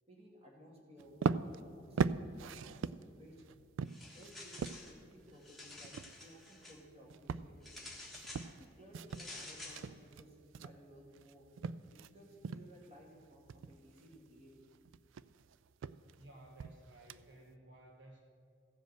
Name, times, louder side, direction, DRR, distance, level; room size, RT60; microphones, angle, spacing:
voice 1, 0.1-3.6 4.1-7.7 8.4-11.5 11.9-14.6, equal, 30° right, -1 dB, 2.2 m, -58 dB
Footsteps Men's Dress Shoes Hardwood Floor Wood, 1.0-12.1 12.4-12.9 13.2-17.5, right 5 dB, 80° right, 0.3 m, -40 dB
sound 1, 3.9-5.0 5.3-6.8 7.6-8.5 9.1-9.8, left 2 dB, ahead, 1.3 m, -50 dB
voice 2, 16.1-18.2, right 1 dB, 60° right, 1 dB, 1.1 m, -57 dB
15.0 x 5.2 x 7.9 m, 2.4 s
head